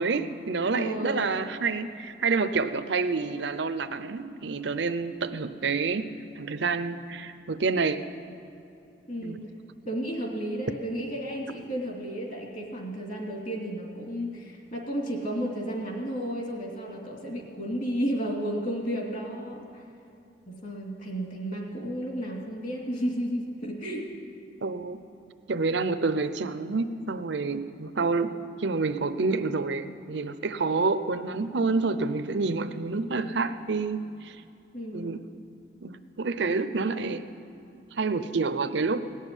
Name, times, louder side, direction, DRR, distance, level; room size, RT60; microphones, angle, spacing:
voice 1, 0.0-6.1 6.4-8.0 9.2-9.4 24.6-25.0 25.5-28.3 28.6-34.4 34.9-35.2 35.8-37.2 37.9-39.0, right 4 dB, 65° right, 10 dB, 0.7 m, -28 dB
voice 2, 0.7-1.5 9.1-9.5 9.9-19.8 20.5-24.1 34.7-35.2, equal, 45° left, 0 dB, 2.6 m, -33 dB
18.5 x 7.4 x 9.9 m, 2.7 s
head